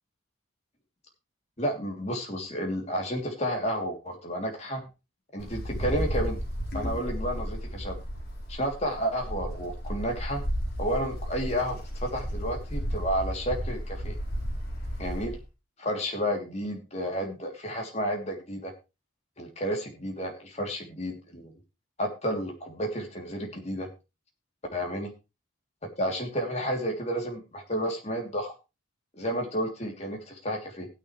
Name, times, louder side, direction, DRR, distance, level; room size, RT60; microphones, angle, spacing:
voice 1, 1.6-4.9 5.3-6.4 6.7-8.0 8.5-10.4 10.8-14.2 15.0-15.4 15.8-18.7 19.4-21.5 22.0-23.9 24.7-25.1 26.0-28.5 29.2-30.9, equal, 30° left, 1 dB, 2.9 m, -31 dB
Wind, 5.4-15.4, equal, 50° left, 4.1 m, -33 dB
15.5 x 9.8 x 3.2 m, 0.28 s
head